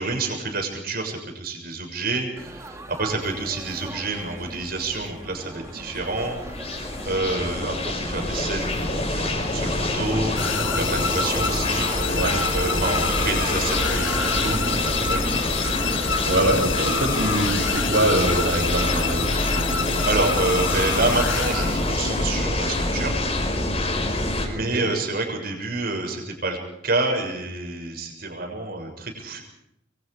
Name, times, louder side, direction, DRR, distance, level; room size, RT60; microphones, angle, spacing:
voice 1, 0.0-6.4 7.0-11.9 12.5-15.4 19.8-23.1 24.4-26.6 26.8-29.4, right 2 dB, 55° right, 2 dB, 6.7 m, -28 dB
Laughter / Chatter / Crowd, 2.4-14.5, right 1 dB, 15° right, 1.9 m, -39 dB
sound 1, 5.4-24.5, left 1 dB, 35° left, 5.2 m, -26 dB
sound 2, 10.4-22.2, left 6 dB, 85° left, 1.4 m, -28 dB
voice 2, 16.2-19.3 24.3-24.9, right 1 dB, 70° right, -7 dB, 7.9 m, -24 dB
26.0 x 24.0 x 5.0 m, 0.76 s
head